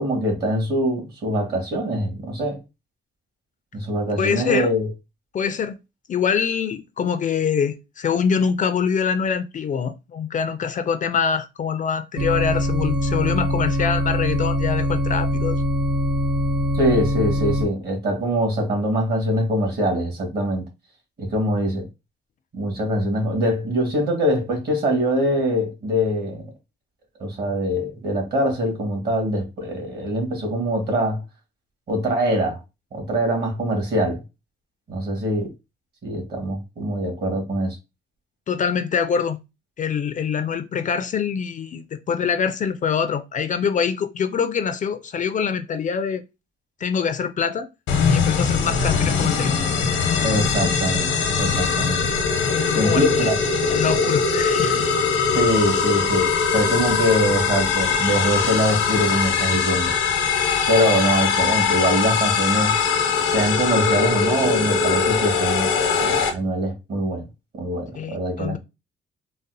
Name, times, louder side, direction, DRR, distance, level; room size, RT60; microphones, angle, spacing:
voice 1, 0.0-2.6 3.7-4.9 16.7-20.6 21.2-21.9 22.5-26.4 27.2-31.2 31.9-32.6 32.9-34.2 34.9-35.5 36.0-37.8 50.2-51.1 51.4-52.1 52.7-53.4 55.3-59.9 60.7-62.7 63.3-65.7 66.0-67.3 67.5-68.6, equal, 55° right, 1.5 m, -23 dB
voice 2, 4.2-4.7 5.3-5.8 6.1-15.6 38.5-39.4 39.8-46.2 46.8-47.7 48.1-49.6 52.4-53.3 53.7-54.9 67.9-68.6, left 6 dB, 40° left, 0.4 m, -24 dB
sound 1, 12.2-17.7, left 1 dB, 80° right, 0.6 m, -22 dB
sound 2, 47.9-66.3, left 5 dB, 90° left, 0.8 m, -21 dB
4.0 x 2.1 x 2.6 m
cardioid pair, 90°, 20 cm